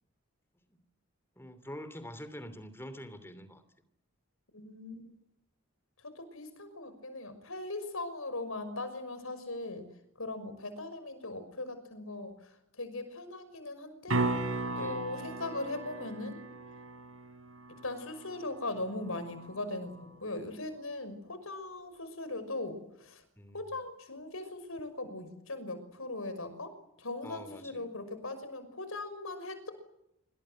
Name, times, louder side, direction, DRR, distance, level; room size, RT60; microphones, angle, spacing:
voice 1, 1.4-3.6 14.7-15.0 23.4-23.7 27.2-27.9, equal, 10° left, 2.9 m, -46 dB
voice 2, 4.5-5.1 6.0-9.9 10.2-14.2 14.8-16.4 17.8-23.2 23.5-26.7 27.0-29.7, left 2 dB, 75° left, 6.0 m, -39 dB
sound 1, 14.1-20.1 24.8-24.9, right 2 dB, 80° right, 4.4 m, -37 dB
27.5 x 25.0 x 7.8 m
head